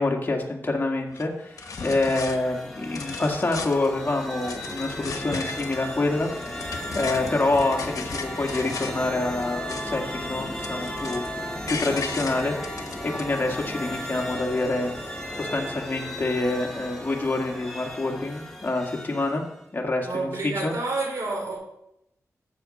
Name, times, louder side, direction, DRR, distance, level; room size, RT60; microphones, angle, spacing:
voice 1, 0.0-6.3 6.9-12.6 13.0-15.0 15.4-19.5 19.7-20.7, left 2 dB, 35° left, 1 dB, 2.0 m, -27 dB
sound 1, 1.1-1.2 1.6-2.4 2.8-3.9 4.3-5.8 6.2-9.0 9.4-10.1 10.4-11.3 11.7-13.2, left 5 dB, 75° left, 1.1 m, -36 dB
sound 2, 1.4-19.6, left 1 dB, 5° left, 2.4 m, -35 dB
voice 2, 20.0-21.6, right 3 dB, 70° right, -1 dB, 4.8 m, -29 dB
12.5 x 7.7 x 4.2 m, 0.81 s
cardioid pair, 70°, 6 cm